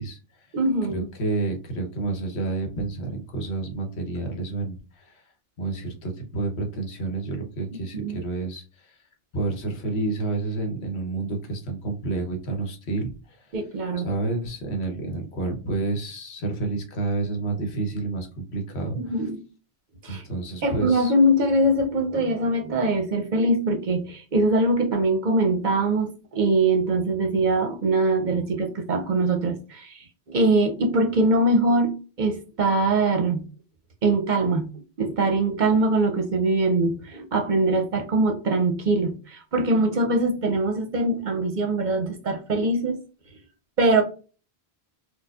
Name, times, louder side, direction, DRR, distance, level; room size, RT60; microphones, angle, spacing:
voice 1, 0.0-0.5 0.9-5.2 5.6-8.9 9.3-13.5 14.0-19.0 20.1-21.1, right 3 dB, 85° left, 1.1 m, -29 dB
voice 2, 0.5-1.1 7.9-8.2 13.5-14.1 18.9-19.4 20.0-20.2 20.6-33.4 34.0-34.7 35.0-43.0 43.8-44.0, right 2 dB, 55° right, 0.6 m, -22 dB
4.4 x 2.2 x 2.3 m
omnidirectional pair, 1.1 m